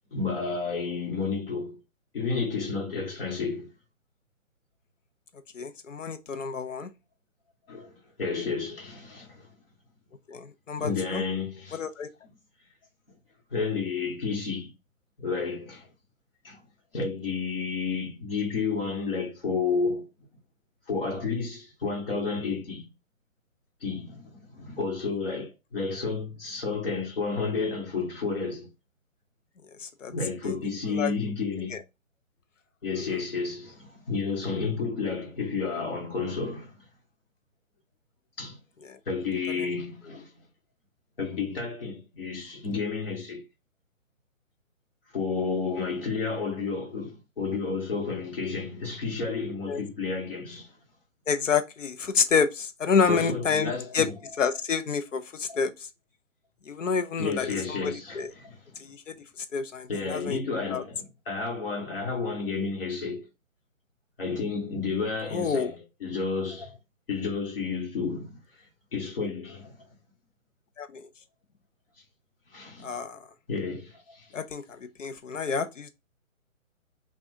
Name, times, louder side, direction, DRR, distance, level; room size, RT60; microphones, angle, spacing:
voice 1, 0.1-1.8 2.1-3.7 7.7-9.5 10.7-11.8 13.5-14.7 15.2-15.9 16.4-16.6 16.9-20.1 20.9-22.9 23.8-28.7 30.1-31.8 32.8-36.7 38.4-38.6 39.1-40.3 41.2-43.4 45.1-50.7 53.1-54.2 55.5-55.6 57.2-58.8 59.9-63.3 64.2-66.8 67.1-68.4 68.9-69.8 72.5-73.0 73.5-74.2, left 4 dB, 45° left, 1.5 m, -31 dB
voice 2, 5.5-6.9 10.3-11.2 11.7-12.1 29.8-30.1 30.4-30.5 30.9-31.1 31.7-31.8 38.8-39.0 39.5-39.7 49.7-49.8 51.3-54.1 54.4-55.9 56.7-58.3 58.8-60.4 60.7-60.8 65.3-65.7 70.8-71.0 72.8-73.3 74.3-75.9, left 5 dB, 65° left, 0.8 m, -29 dB
5.8 x 2.5 x 2.6 m
hypercardioid pair, 170°, 41 cm